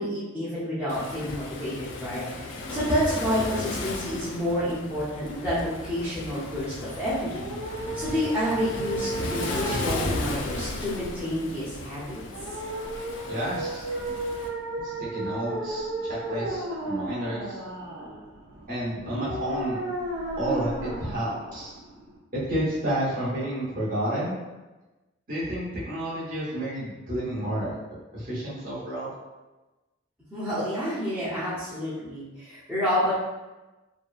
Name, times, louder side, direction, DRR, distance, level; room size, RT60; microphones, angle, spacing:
voice 1, 0.0-12.2 30.3-33.2, equal, 5° right, -12 dB, 0.6 m, -29 dB
Waves surf, 0.9-14.5, left 2 dB, 65° left, 0.3 m, -35 dB
sound 1, 7.2-22.2, right 2 dB, 80° right, 0.6 m, -34 dB
voice 2, 13.3-13.8 14.8-17.6 18.7-19.8 20.4-21.7 22.3-24.4 25.3-27.7 28.1-29.1, right 1 dB, 45° right, -7 dB, 1.0 m, -30 dB
2.7 x 2.3 x 2.4 m, 1.1 s
head